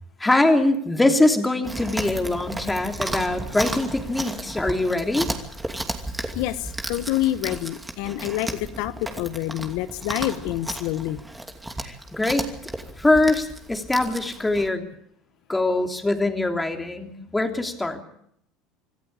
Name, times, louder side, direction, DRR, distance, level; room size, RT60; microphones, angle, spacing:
voice 1, 0.2-5.3 11.8-12.5 13.0-14.8 15.5-18.0, left 2 dB, 10° left, 4 dB, 3.0 m, -23 dB
Chewing mastication, 1.6-14.7, right 1 dB, 10° right, 2.7 m, -34 dB
voice 2, 6.3-11.2, left 15 dB, 70° left, 12 dB, 1.0 m, -27 dB
26.5 x 14.5 x 8.8 m, 0.72 s
supercardioid pair, 105°, 0 cm